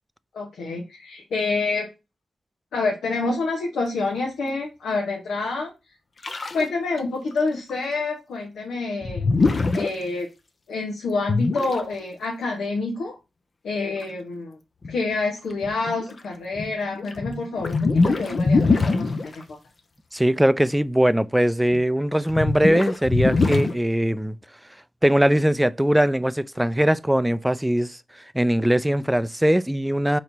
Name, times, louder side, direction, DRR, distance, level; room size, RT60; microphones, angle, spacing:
voice 1, 0.3-1.9 2.7-5.7 6.5-9.3 9.7-10.3 10.7-13.2 13.6-14.6 14.9-19.6, left 3 dB, 85° left, 1.0 m, -27 dB
sound 1, 6.2-6.7 7.0-7.1 7.3-7.4 7.7-7.8 9.0-9.9 11.3-11.8 14.0-14.1 14.8-15.0 15.5-16.1 16.6-19.4 21.7-21.8 22.3-23.7, left 3 dB, 50° left, 0.6 m, -23 dB
voice 2, 20.1-24.4 25.0-30.2, equal, 5° right, 0.3 m, -21 dB
4.2 x 3.1 x 4.0 m
cardioid pair, 55°, 0 cm